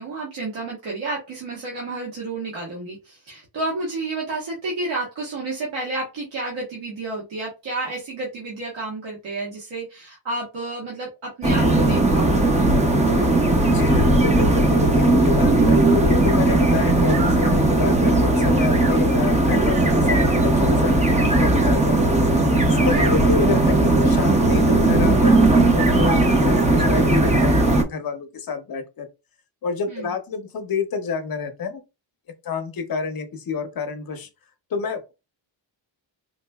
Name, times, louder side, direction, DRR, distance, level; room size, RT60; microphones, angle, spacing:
voice 1, 0.0-12.3 22.8-23.2 29.9-30.1, right 2 dB, 70° right, 1.3 m, -31 dB
sound 1, 11.4-27.8, right 2 dB, 15° right, 0.5 m, -17 dB
voice 2, 13.6-25.5 25.8-27.6 27.9-29.1 29.6-31.8 32.4-34.3 34.7-35.1, left 5 dB, 50° left, 0.7 m, -29 dB
4.0 x 2.6 x 2.2 m
wide cardioid pair, 145°, 48 cm